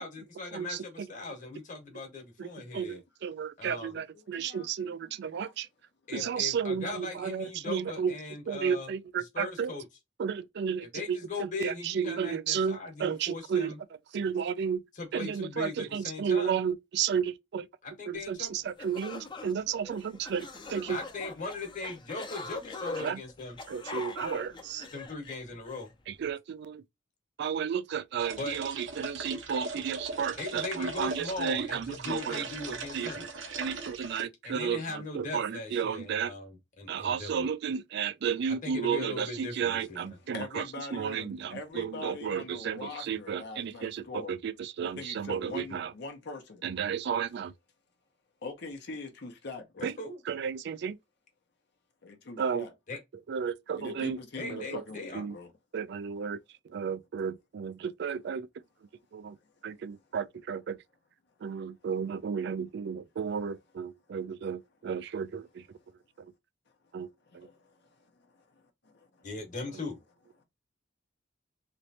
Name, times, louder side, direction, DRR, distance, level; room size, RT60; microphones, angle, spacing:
voice 1, 0.0-3.0 3.6-3.9 6.1-8.9 9.3-9.8 10.9-13.8 15.0-16.5 17.8-18.5 20.9-23.6 24.9-25.9 28.4-28.6 30.4-33.2 34.4-37.5 38.6-40.1 50.0-50.2 52.9-53.0 54.4-55.2 69.2-69.9, left 3 dB, 45° left, 1.2 m, -39 dB
voice 2, 0.5-1.1 2.4-5.7 6.1-8.2 8.5-9.7 10.2-13.7 14.1-14.8 15.1-17.7 18.1-21.0 23.0-23.2 23.7-24.9 26.1-26.8 27.4-33.1 33.6-36.3 36.9-40.6 40.9-45.9 46.6-47.5 49.8-49.9 50.3-51.0 52.4-52.7 53.3-54.2 54.5-54.8 55.1-55.4 55.7-56.4 56.6-58.5 59.1-59.4 59.6-60.8 61.4-65.8 66.2-66.3 66.9-67.1 67.3-67.5 69.7-69.8, right 7 dB, 60° right, 0.3 m, -33 dB
voice 3, 4.4-4.9 5.3-5.5 6.1-6.4 40.3-44.3 45.0-46.6 48.4-49.9 52.0-52.7 53.8-55.5 67.3-68.5 68.8-69.3, left 3 dB, 60° left, 0.8 m, -43 dB
sound 1, 18.4-18.5 18.8-25.9, left 3 dB, 25° left, 0.6 m, -42 dB
sound 2, 28.2-34.2, right 3 dB, 80° right, 0.9 m, -39 dB
3.1 x 3.0 x 2.7 m
head